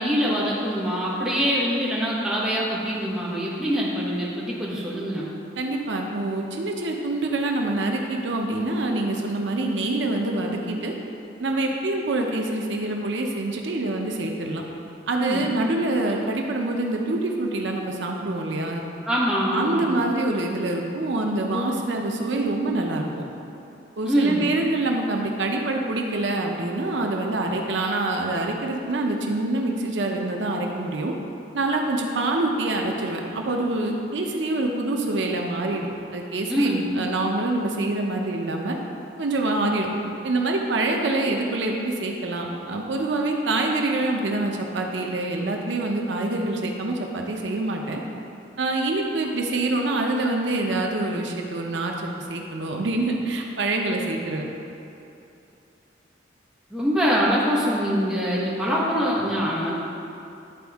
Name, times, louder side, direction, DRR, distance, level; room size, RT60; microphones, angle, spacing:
voice 1, 0.0-5.3 15.2-15.4 19.1-19.9 21.5-21.7 24.0-24.4 36.5-36.8 56.7-59.7, equal, 5° right, -7 dB, 1.3 m, -24 dB
voice 2, 5.6-10.9 11.4-14.6 15.1-18.8 19.5-23.1 24.0-31.1 31.5-35.9 36.1-38.8 39.2-39.9 40.2-48.0 48.6-54.5, right 2 dB, 80° right, 1 dB, 0.7 m, -26 dB
11.0 x 4.3 x 3.5 m, 2.8 s
head